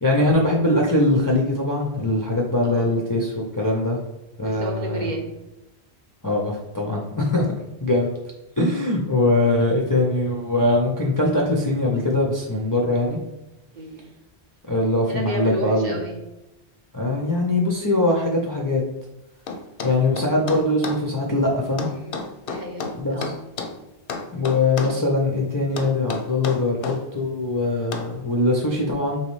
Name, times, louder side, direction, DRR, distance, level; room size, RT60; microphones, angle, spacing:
voice 1, 0.0-4.0 4.4-5.1 6.2-7.5 7.8-8.1 8.6-13.2 14.7-15.9 16.9-18.8 19.8-21.9 23.0-23.2 24.3-29.2, left 2 dB, 30° left, -3 dB, 0.4 m, -22 dB
voice 2, 4.4-5.3 13.7-14.1 15.1-16.2 21.9-23.4, right 1 dB, 50° right, 1 dB, 0.7 m, -32 dB
sound 1, 19.5-21.0 21.8-23.8 24.1-25.0 25.8-27.0 27.9-28.1, left 4 dB, 65° left, 0.7 m, -31 dB
4.1 x 3.1 x 3.1 m, 0.94 s
omnidirectional pair, 1.1 m